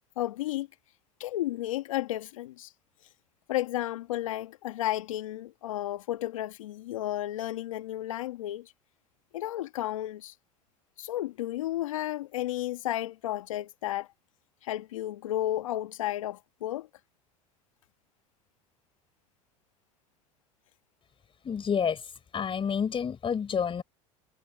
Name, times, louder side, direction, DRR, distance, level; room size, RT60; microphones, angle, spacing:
voice 1, 0.2-0.7 1.2-2.7 3.5-8.7 9.3-10.3 11.0-14.1 14.6-16.9, left 14 dB, 85° left, 1.4 m, -32 dB
voice 2, 21.4-22.0 22.3-23.8, left 7 dB, 30° left, 4.5 m, -29 dB
hypercardioid pair, 85°, 17 cm